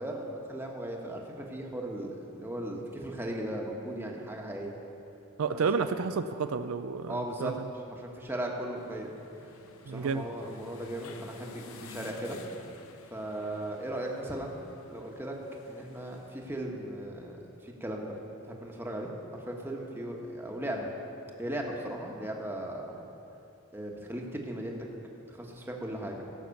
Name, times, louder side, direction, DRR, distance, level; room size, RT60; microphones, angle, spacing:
voice 1, 0.0-4.7 5.5-5.9 7.1-7.5 8.0-9.1 9.4-9.5 9.8-12.4 13.1-14.6 14.9-15.4 15.7-18.2 18.4-20.9 21.4-23.1 23.7-24.8 25.3-26.3, right 1 dB, 10° right, 0 dB, 1.2 m, -37 dB
voice 2, 5.4-7.7 9.9-10.2, right 5 dB, 85° right, 10 dB, 0.4 m, -31 dB
sound 1, 8.8-16.4, left 4 dB, 80° left, 0.8 m, -52 dB
16.5 x 6.0 x 7.0 m, 2.9 s
head